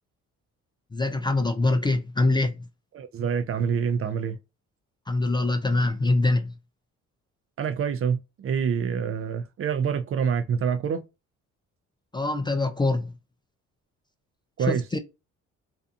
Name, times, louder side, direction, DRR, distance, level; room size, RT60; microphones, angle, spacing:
voice 1, 0.9-2.5 5.1-6.5 12.1-13.1 14.6-15.0, left 2 dB, 15° left, 0.3 m, -24 dB
voice 2, 2.9-4.4 7.6-11.0 14.6-14.8, right 7 dB, 45° right, 0.4 m, -26 dB
2.5 x 2.3 x 2.6 m
cardioid pair, 90°, 30 cm